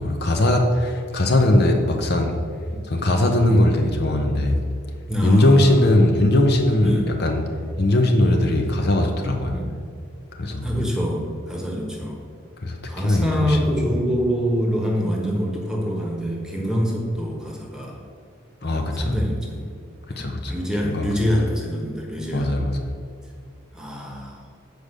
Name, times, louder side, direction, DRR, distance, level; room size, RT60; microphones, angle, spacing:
voice 1, 0.0-2.4 2.9-4.6 5.2-7.4 7.8-9.6 10.4-10.7 12.6-13.7 18.6-19.2 20.2-20.5 20.8-21.1 22.3-22.8, left 1 dB, 50° left, 3 dB, 0.8 m, -19 dB
voice 2, 5.1-5.8 6.8-7.1 8.4-8.6 9.5-9.7 10.6-12.2 12.9-18.0 18.9-19.7 20.1-22.5 23.7-24.4, equal, 5° right, -1 dB, 1.3 m, -25 dB
7.9 x 5.0 x 6.6 m, 2.3 s
head